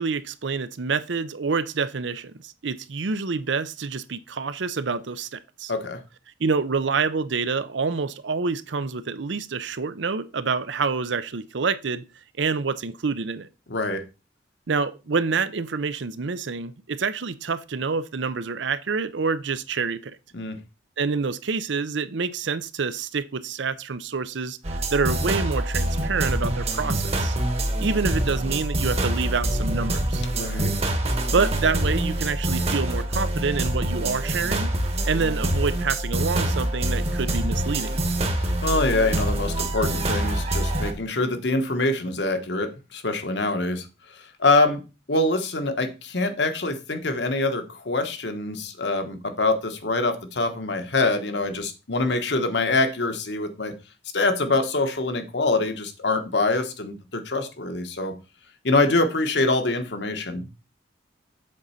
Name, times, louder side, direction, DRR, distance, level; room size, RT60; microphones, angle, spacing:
voice 1, 0.0-5.7 6.4-12.0 12.4-13.5 14.7-20.1 21.0-24.6 24.9-27.4 27.8-30.2 31.3-34.7 35.0-38.0, right 4 dB, 75° right, 0.6 m, -27 dB
voice 2, 5.7-6.0 13.7-14.0 20.3-20.6 30.3-30.7 38.3-43.9 44.1-44.8 45.1-53.7 54.1-58.1 58.6-60.5, left 2 dB, 65° left, 1.2 m, -25 dB
sound 1, 24.6-40.9, right 1 dB, 35° right, 1.1 m, -25 dB
7.6 x 4.0 x 5.6 m
head